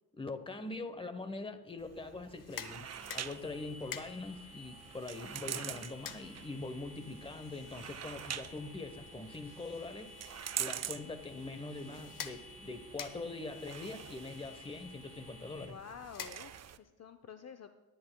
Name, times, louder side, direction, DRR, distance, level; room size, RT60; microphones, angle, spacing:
voice 1, 0.2-15.8, left 3 dB, 15° left, 9 dB, 0.9 m, -43 dB
sound 1, 1.8-16.8, right 9 dB, 45° right, 0.5 m, -46 dB
sound 2, 2.2-16.9, left 8 dB, 65° left, 0.9 m, -51 dB
sound 3, 2.8-15.6, left 1 dB, 15° right, 4.1 m, -54 dB
voice 2, 15.6-17.7, left 6 dB, 45° left, 8 dB, 0.6 m, -50 dB
19.0 x 10.5 x 2.2 m, 1.2 s
cardioid pair, 100°, 35 cm